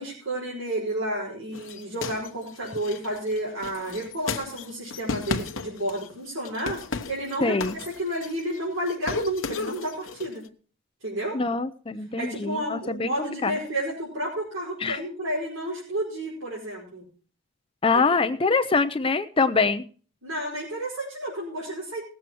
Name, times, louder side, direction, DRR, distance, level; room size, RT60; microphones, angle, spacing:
voice 1, 0.0-10.4 11.0-11.4 12.2-17.0 17.9-18.2 20.2-22.1, right 1 dB, 80° right, -5 dB, 5.0 m, -31 dB
sound 1, 1.5-6.1 6.5-8.6 8.9-10.3, left 4 dB, 70° left, 1.1 m, -34 dB
voice 2, 7.4-7.8 11.3-13.1 13.4-13.5 14.8-15.0 17.8-19.8, left 4 dB, 25° left, 9 dB, 0.6 m, -24 dB
18.5 x 7.8 x 4.5 m, 0.40 s
head